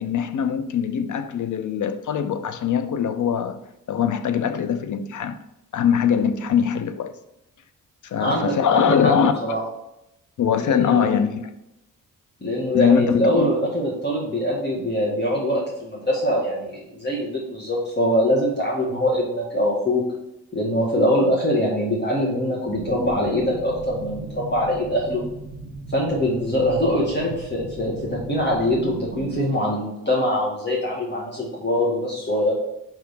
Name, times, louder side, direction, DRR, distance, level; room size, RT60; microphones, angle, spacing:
voice 1, 0.0-3.6 3.9-5.4 5.7-7.1 8.0-9.6 10.4-11.4 12.7-13.5, left 7 dB, 65° left, 0.7 m, -22 dB
voice 2, 8.2-9.1 9.4-9.6 10.6-11.1 12.4-20.0 20.5-25.2 25.9-32.5, equal, 30° left, 1.7 m, -23 dB
sound 1, 22.7-29.4, right 4 dB, 60° right, 1.5 m, -37 dB
5.6 x 3.6 x 5.8 m
cardioid pair, 70°, 33 cm